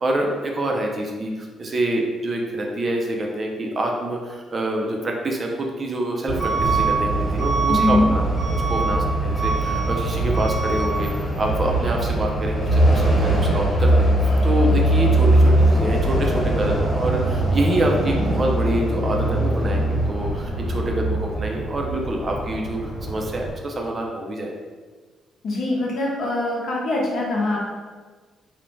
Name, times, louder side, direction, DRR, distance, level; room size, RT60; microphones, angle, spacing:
voice 1, 0.0-8.3 8.5-24.6, right 1 dB, 40° right, 1 dB, 0.4 m, -26 dB
Truck / Alarm, 6.3-23.5, right 1 dB, 20° left, 1.1 m, -21 dB
voice 2, 7.7-8.0 25.4-27.6, left 2 dB, 60° left, -3 dB, 0.7 m, -23 dB
2.6 x 2.1 x 3.0 m, 1.4 s
cardioid pair, 90°, 0 cm